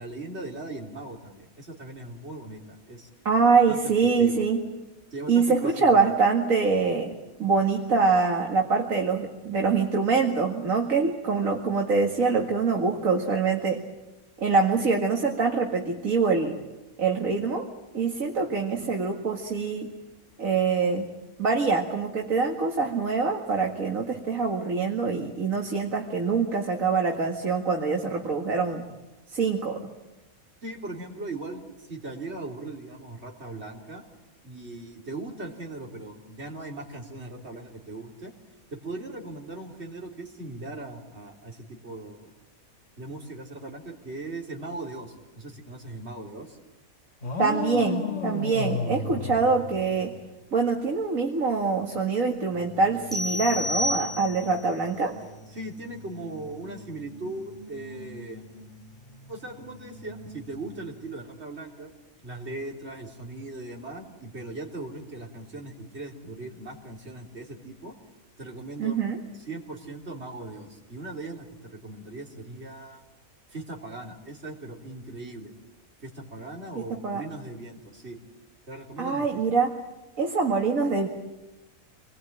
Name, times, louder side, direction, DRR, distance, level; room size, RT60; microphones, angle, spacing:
voice 1, 0.0-3.1 3.7-3.8 4.2-4.4 5.1-6.0 30.6-34.0 34.4-38.3 38.7-42.3 43.0-46.6 55.5-58.5 59.3-61.9 62.2-67.9 68.4-69.0 69.2-73.0 73.5-75.5 76.0-78.2 78.7-79.3, right 2 dB, 50° right, 0 dB, 3.9 m, -39 dB
voice 2, 3.3-4.6 5.3-13.8 14.4-16.6 17.0-17.7 17.9-19.9 20.4-21.0 21.4-28.9 29.3-29.8 47.4-50.1 50.5-55.2 68.8-69.2 76.8-77.2 79.0-79.7 80.2-81.1, right 4 dB, 70° right, 1 dB, 2.4 m, -24 dB
sound 1, 47.2-50.3, left 4 dB, 50° left, 1.9 m, -32 dB
sound 2, 52.5-61.1, right 1 dB, 35° left, 3.9 m, -47 dB
sound 3, 53.1-54.6, left 1 dB, ahead, 3.8 m, -30 dB
28.0 x 21.0 x 8.9 m, 1.0 s
omnidirectional pair, 1.5 m